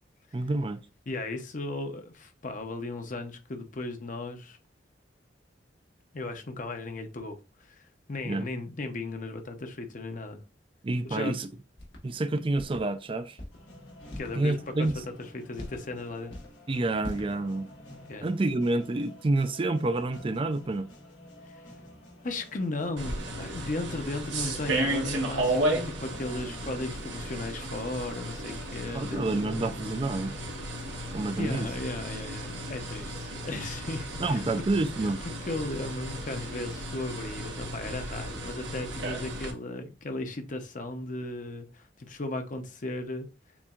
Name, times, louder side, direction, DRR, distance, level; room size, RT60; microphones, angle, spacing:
voice 1, 0.3-0.8 8.3-8.5 10.8-11.5 12.0-13.4 14.4-15.0 16.7-17.7 18.2-20.9 28.9-30.4 31.1-31.7 34.2-35.2, right 2 dB, 30° right, 0.4 m, -28 dB
voice 2, 1.1-4.6 6.1-10.4 11.0-11.3 14.2-14.9 15.2-16.3 18.1-18.3 21.4-21.7 22.2-29.6 31.4-34.6 35.0-43.3, left 2 dB, 45° left, 0.8 m, -36 dB
sound 1, 11.8-12.0 12.6-12.8 13.4-13.6 14.1-14.4 14.8-15.1 15.6-15.9 16.3-16.5 17.0-17.3, left 1 dB, 70° left, 1.7 m, -40 dB
sound 2, 13.5-31.8, left 1 dB, 85° left, 1.9 m, -50 dB
sound 3, 23.0-39.5, right 1 dB, 85° right, 1.2 m, -34 dB
7.1 x 2.7 x 2.4 m
head